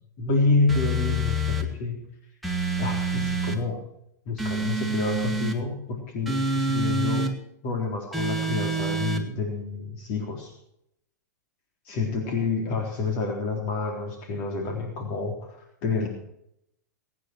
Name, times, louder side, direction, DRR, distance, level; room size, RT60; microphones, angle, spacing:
voice 1, 0.2-2.0 2.8-3.8 4.3-7.3 7.6-10.5 11.9-16.1, left 3 dB, 50° left, 1 dB, 3.8 m, -28 dB
sound 1, 0.7-1.7 2.4-3.6 4.4-5.6 6.3-7.3 8.1-9.2, right 2 dB, ahead, 2.2 m, -27 dB
23.0 x 9.7 x 4.7 m, 0.76 s
hypercardioid pair, 105°, 9 cm